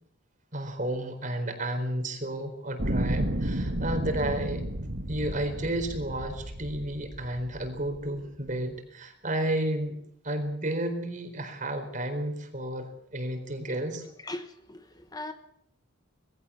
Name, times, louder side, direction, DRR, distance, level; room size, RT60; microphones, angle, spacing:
voice 1, 0.5-4.6 5.1-10.0 10.2-14.0, right 1 dB, 40° right, 4.2 m, -32 dB
sound 1, 2.8-8.0 8.8-8.9, right 1 dB, 60° right, 2.1 m, -32 dB
voice 2, 14.2-15.3, left 2 dB, 20° left, 1.2 m, -39 dB
21.0 x 16.0 x 8.4 m
head